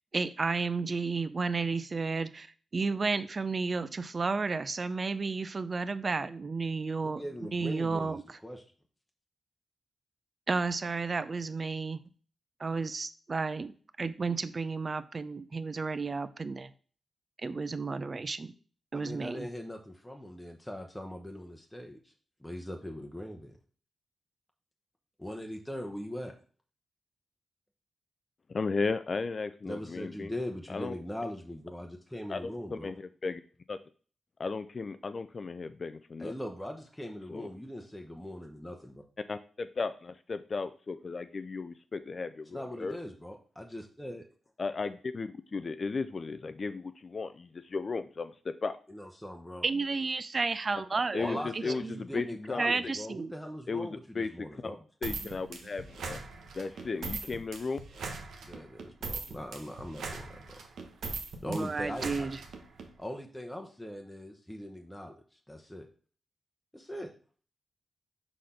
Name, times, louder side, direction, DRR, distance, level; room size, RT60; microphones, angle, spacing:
voice 1, 0.1-2.5 2.7-8.4 10.5-12.0 12.6-13.7 14.0-16.7 17.4-18.5 18.9-19.5 49.6-52.0 52.6-53.3 61.5-62.4, right 4 dB, 45° right, 14 dB, 0.5 m, -32 dB
voice 2, 7.0-8.6 18.9-22.0 22.4-23.5 25.2-26.3 29.6-32.9 36.2-38.9 42.5-44.2 48.9-49.6 51.2-54.8 58.5-60.3 61.4-62.3 63.0-65.1 65.5-65.9 66.7-67.1, left 1 dB, 5° left, 2 dB, 0.9 m, -40 dB
voice 3, 28.5-30.3 30.7-30.9 32.3-33.4 33.7-33.8 34.4-36.3 37.3-37.5 39.3-43.0 44.6-48.8 51.1-52.9 53.7-54.3 54.6-54.7 55.0-56.2 56.6-57.8, left 4 dB, 50° left, 11 dB, 0.4 m, -35 dB
sound 1, 55.0-62.9, right 4 dB, 85° right, 1.0 m, -40 dB
5.0 x 4.0 x 5.7 m, 0.41 s
cardioid pair, 55°, 0 cm